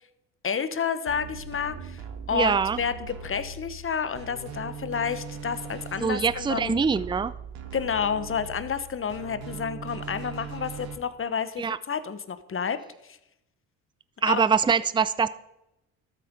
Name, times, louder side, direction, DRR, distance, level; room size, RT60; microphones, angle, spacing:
voice 1, 0.4-2.0 2.3-6.8 7.7-12.8 13.1-13.2 14.2-14.4, left 6 dB, 35° left, 12 dB, 1.2 m, -30 dB
sound 1, 1.1-10.9, right 5 dB, 80° right, 1.7 m, -40 dB
voice 2, 2.3-2.8 6.0-7.3 11.6-11.8 14.2-15.3, right 6 dB, 15° right, 17 dB, 0.5 m, -23 dB
13.0 x 8.1 x 5.3 m, 0.87 s
supercardioid pair, 70°, 37 cm